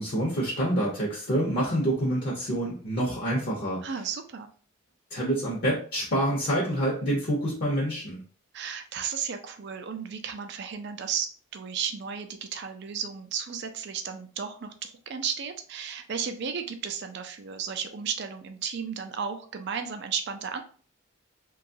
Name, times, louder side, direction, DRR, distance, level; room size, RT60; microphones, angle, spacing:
voice 1, 0.0-3.8 5.1-8.2, right 1 dB, 45° left, -3 dB, 0.7 m, -27 dB
voice 2, 3.8-4.5 8.5-20.6, right 7 dB, 50° right, 7 dB, 0.4 m, -34 dB
2.8 x 2.3 x 2.6 m, 0.42 s
head